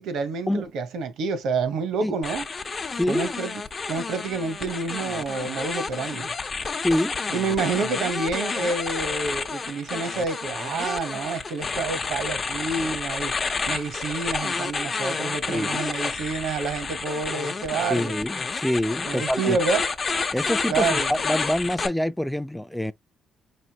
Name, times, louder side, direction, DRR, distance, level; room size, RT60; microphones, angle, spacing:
voice 1, 0.0-2.5 3.1-6.3 7.3-13.3 13.7-18.2 19.1-19.9 20.7-21.1, right 4 dB, 80° right, 1.0 m, -28 dB
sound 1, 2.2-21.9, left 4 dB, 35° left, 0.7 m, -30 dB
voice 2, 2.9-3.4 6.8-7.1 15.5-15.8 17.9-19.6 20.3-22.9, left 1 dB, 5° left, 0.4 m, -26 dB
5.1 x 3.1 x 2.9 m
cardioid pair, 90°, 0 cm